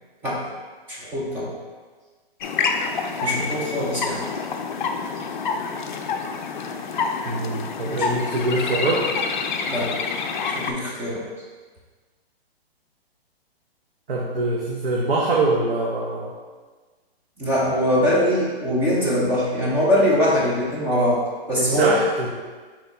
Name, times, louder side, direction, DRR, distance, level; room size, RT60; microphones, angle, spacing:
voice 1, 0.9-1.5 3.2-4.3 7.9-8.1 9.7-10.0 10.5-11.3 17.4-21.2 21.5-22.0, equal, 5° right, -7 dB, 0.4 m, -22 dB
sound 1, 2.4-10.7, left 5 dB, 50° left, 0.4 m, -27 dB
voice 2, 7.3-9.1 14.1-16.3 21.6-22.3, right 2 dB, 65° right, -4 dB, 0.9 m, -24 dB
4.1 x 3.1 x 4.0 m, 1.4 s
hypercardioid pair, 150°, 31 cm